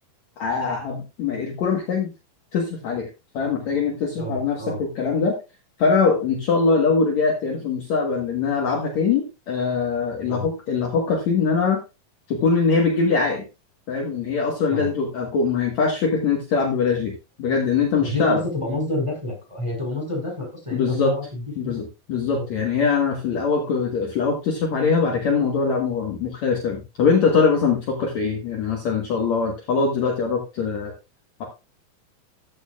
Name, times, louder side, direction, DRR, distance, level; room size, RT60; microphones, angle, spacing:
voice 1, 0.4-2.1 2.5-3.1 3.3-5.4 5.8-11.8 12.3-13.5 13.9-18.4 20.7-21.1 21.6-30.9, left 5 dB, 55° left, 0 dB, 2.4 m, -22 dB
voice 2, 4.2-4.8 10.2-10.5 14.7-14.9 18.0-21.8 22.3-22.5, left 1 dB, 5° right, -1 dB, 4.8 m, -29 dB
14.0 x 8.5 x 2.5 m, 0.27 s
omnidirectional pair, 4.4 m